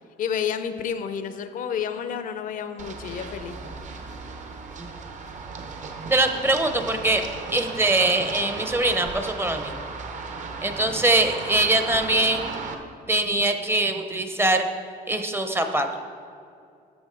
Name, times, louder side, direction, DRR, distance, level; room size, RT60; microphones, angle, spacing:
voice 1, 0.2-3.6, left 7 dB, 55° left, 10 dB, 0.6 m, -30 dB
Run, 2.8-12.7, right 4 dB, 45° right, 0.9 m, -36 dB
voice 2, 6.1-7.3 7.5-9.8 10.6-12.5 13.1-14.7 15.1-16.0, right 2 dB, 15° right, 7 dB, 0.7 m, -22 dB
13.0 x 6.0 x 3.8 m, 2.4 s
cardioid pair, 110°, 17 cm